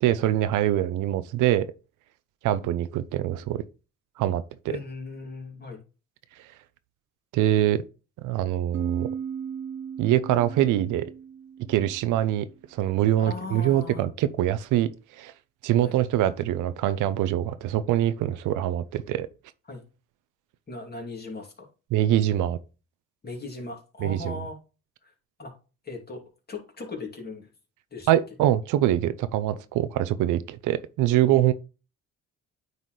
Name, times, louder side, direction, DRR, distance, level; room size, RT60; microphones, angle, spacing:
voice 1, 0.0-1.7 2.4-3.6 4.2-4.7 7.3-7.8 8.2-9.1 10.0-11.1 11.7-12.5 12.7-14.9 15.2-15.3 15.6-19.3 21.9-22.6 24.0-24.3 28.1-31.5, right 12 dB, 90° right, 0.6 m, -24 dB
voice 2, 4.7-5.8 13.2-14.0 15.8-16.0 19.7-19.8 20.7-21.7 23.2-24.6 25.0-25.1 25.4-25.5 25.8-26.2 26.5-27.5 27.9-28.1, left 3 dB, 30° left, 2.6 m, -38 dB
sound 1, 8.7-12.3, right 7 dB, 40° right, 0.4 m, -36 dB
9.2 x 4.1 x 3.2 m
cardioid pair, 90°, 30 cm